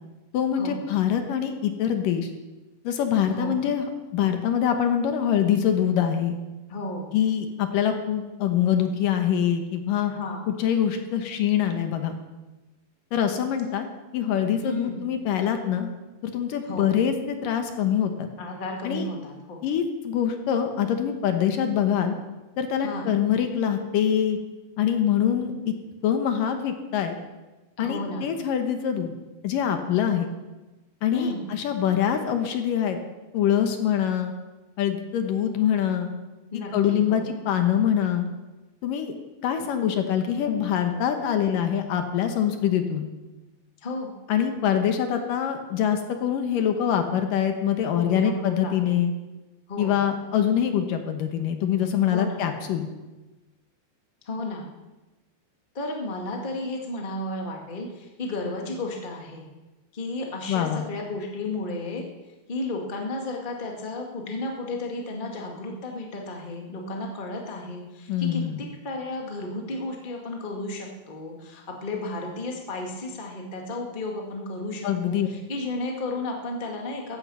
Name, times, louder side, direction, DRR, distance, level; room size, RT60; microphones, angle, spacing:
voice 1, 0.3-2.3 2.8-6.4 7.1-10.1 10.5-12.2 13.1-13.9 14.1-15.9 16.2-18.3 18.8-19.1 19.6-22.2 22.6-24.4 24.8-25.7 26.0-27.2 27.8-29.1 29.4-30.3 31.0-33.0 33.3-34.3 34.8-36.1 36.7-38.3 38.8-39.1 39.4-43.1 44.3-49.1 49.8-52.9 60.5-60.8 68.1-68.7 74.8-75.3, left 9 dB, 70° left, 6 dB, 2.7 m, -24 dB
voice 2, 6.7-7.1 10.1-10.5 14.6-15.0 16.6-16.9 18.4-19.6 22.8-23.1 27.8-28.3 31.1-31.4 36.5-37.2 43.8-44.1 47.9-49.0 49.7-50.0 52.1-52.4 54.2-54.6 55.7-59.4 59.9-62.0 62.5-77.2, left 2 dB, 20° left, 1 dB, 1.5 m, -33 dB
15.5 x 14.5 x 5.7 m, 1.1 s
omnidirectional pair, 4.2 m